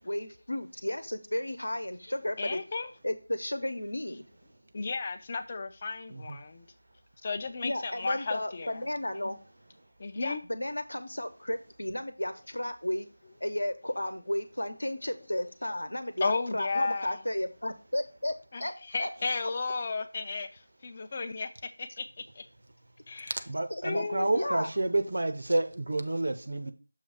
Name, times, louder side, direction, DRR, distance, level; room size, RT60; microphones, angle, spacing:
voice 1, 0.0-2.6 3.0-4.2 7.6-9.4 10.2-13.1 13.4-18.3 18.6-19.1 23.7-24.1 24.3-24.7, left 1 dB, 70° left, 0.9 m, -33 dB
voice 2, 2.4-2.9 4.7-6.7 7.2-8.8 9.2-9.4 10.0-10.4 16.2-17.2 18.5-18.6 18.9-21.5 21.8-22.0 22.4-22.5 23.1-23.3 23.8-24.5, left 4 dB, 25° left, 0.5 m, -33 dB
voice 3, 23.5-26.7, right 2 dB, 50° right, 0.7 m, -29 dB
6.5 x 3.1 x 5.5 m
figure-of-eight pair, 170°, 0 cm